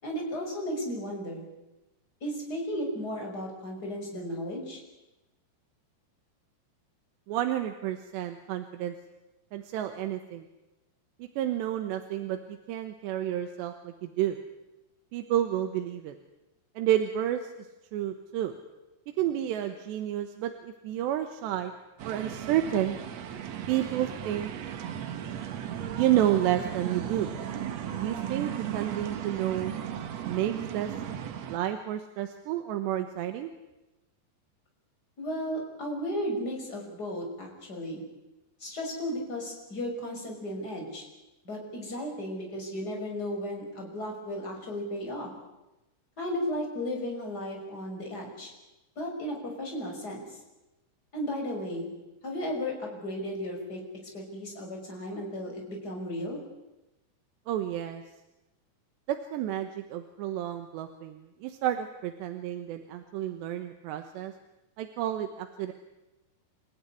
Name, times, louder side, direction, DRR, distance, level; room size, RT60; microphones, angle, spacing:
voice 1, 0.0-1.4 2.2-4.8 35.2-38.0 38.6-41.1 41.4-45.3 46.2-48.5 49.0-50.3 51.1-51.9 52.2-53.8 54.1-56.4, equal, 20° left, 0 dB, 6.0 m, -34 dB
voice 2, 7.3-8.9 9.5-10.5 11.2-14.4 15.1-16.1 16.8-17.7 17.9-18.5 19.2-21.7 22.0-23.0 23.7-24.5 25.9-27.3 28.0-29.7 30.3-30.9 31.5-33.5 57.5-58.0 59.1-64.3 64.8-65.7, right 12 dB, 85° right, 7 dB, 3.4 m, -30 dB
sound 1, 22.0-31.6, right 9 dB, 65° right, 1.7 m, -36 dB
29.0 x 15.5 x 9.9 m, 1.0 s
omnidirectional pair, 5.0 m